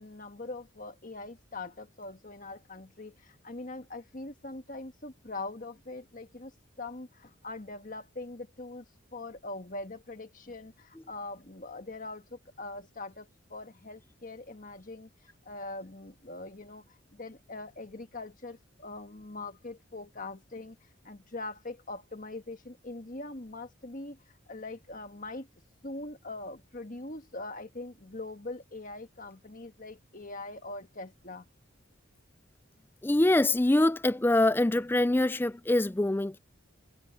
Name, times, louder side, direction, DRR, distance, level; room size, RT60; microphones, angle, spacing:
voice 1, 0.0-8.8 9.1-15.1 15.4-20.8 21.0-24.2 24.5-25.5 25.8-31.4, left 2 dB, 40° left, 1.6 m, -42 dB
voice 2, 33.0-36.4, left 1 dB, 10° left, 0.3 m, -24 dB
head